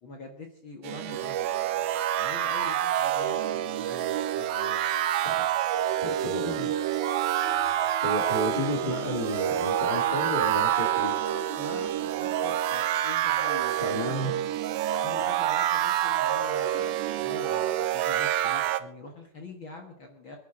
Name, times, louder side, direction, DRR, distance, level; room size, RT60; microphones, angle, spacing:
voice 1, 0.0-1.9 2.1-4.9 11.6-14.4 15.0-20.4, left 3 dB, 55° left, 2 dB, 1.4 m, -43 dB
sound 1, 0.8-18.8, right 12 dB, 80° right, 2.4 m, -27 dB
voice 2, 6.0-6.8 7.6-11.3 13.8-14.3, equal, 25° left, 2 dB, 1.0 m, -32 dB
sound 2, 7.4-13.7 14.0-14.1, left 8 dB, 70° left, 3.3 m, -45 dB
26.0 x 10.5 x 3.8 m, 0.70 s
omnidirectional pair, 4.4 m